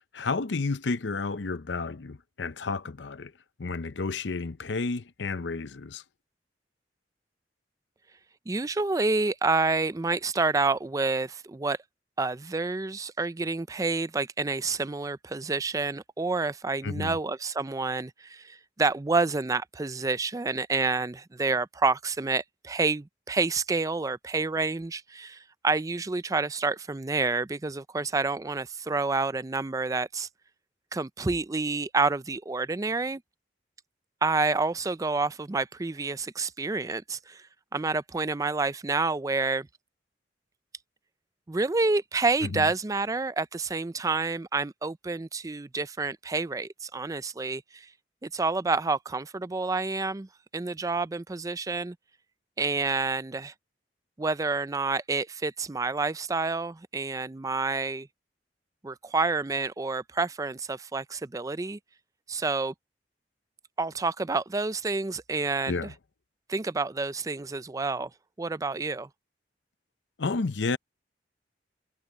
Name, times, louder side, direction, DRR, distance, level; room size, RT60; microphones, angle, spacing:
voice 1, 0.1-3.3 3.6-6.0 16.8-17.2 42.4-42.7 65.7-65.9 70.2-70.8, left 3 dB, 80° left, 0.7 m, -31 dB
voice 2, 8.5-11.8 12.2-30.3 30.9-33.2 34.2-37.4 37.7-39.7 41.5-47.9 48.2-50.3 50.5-52.0 52.6-53.5 54.2-58.1 58.8-61.8 62.3-62.7 63.8-65.9 66.5-68.1 68.4-69.1, right 3 dB, 20° right, 0.4 m, -28 dB
head